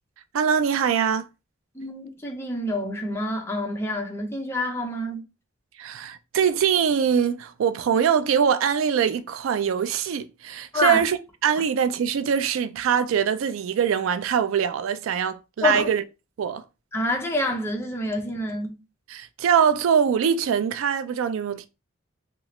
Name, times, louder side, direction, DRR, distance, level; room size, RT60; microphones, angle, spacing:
voice 1, 0.3-1.3 5.8-11.2 11.4-16.0 16.4-16.6 19.1-21.7, right 7 dB, 75° right, 0.3 m, -23 dB
voice 2, 1.7-5.2 10.7-11.0 15.6-15.9 16.9-18.8, left 1 dB, 10° left, 0.6 m, -27 dB
2.8 x 2.4 x 3.0 m
head